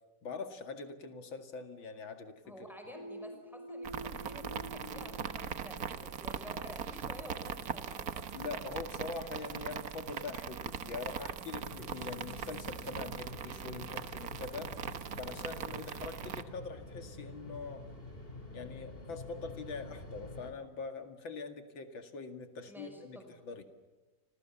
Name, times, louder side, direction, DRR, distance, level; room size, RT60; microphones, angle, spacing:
voice 1, 0.2-2.7 8.3-14.8 15.2-17.9 18.5-23.2 23.4-23.6, left 4 dB, 90° left, 7 dB, 2.9 m, -43 dB
voice 2, 2.4-8.3 22.7-23.3, left 1 dB, ahead, 4 dB, 5.9 m, -50 dB
sound 1, 2.9-6.6, equal, 55° left, 1.7 m, -48 dB
sound 2, 3.8-16.4, right 7 dB, 55° right, 1.4 m, -41 dB
sound 3, 11.6-20.5, left 2 dB, 30° left, 4.3 m, -48 dB
30.0 x 26.0 x 7.2 m, 1.2 s
omnidirectional pair, 2.1 m